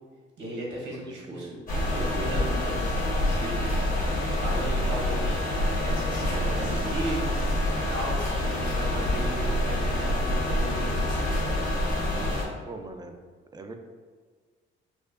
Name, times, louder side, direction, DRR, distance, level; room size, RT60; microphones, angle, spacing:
voice 1, 0.4-1.6 1.9-3.7 4.4-5.4 5.8-7.4 7.9-11.0, right 1 dB, 80° right, -3 dB, 1.0 m, -36 dB
voice 2, 0.9-1.5 12.6-13.2 13.5-13.7, right 3 dB, 20° right, 6 dB, 0.3 m, -41 dB
sound 1, 1.7-12.4, left 1 dB, 45° left, 1.3 m, -27 dB
4.5 x 2.4 x 2.4 m, 1.5 s
cardioid pair, 90°, 20 cm